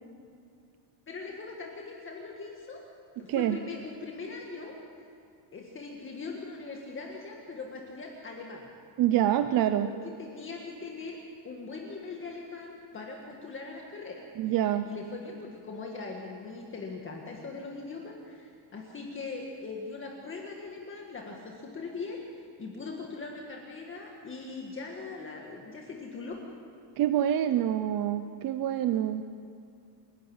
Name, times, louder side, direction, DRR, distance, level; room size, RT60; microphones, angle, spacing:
voice 1, 1.1-2.9 3.2-5.1 5.5-8.7 9.8-11.2 11.4-14.6 14.8-26.4, left 4 dB, 25° left, 0 dB, 1.8 m, -41 dB
voice 2, 9.0-9.9 14.4-14.9 27.0-29.2, right 11 dB, 45° right, 10 dB, 0.6 m, -26 dB
28.5 x 12.0 x 8.7 m, 2.5 s
cardioid pair, 180°, 48 cm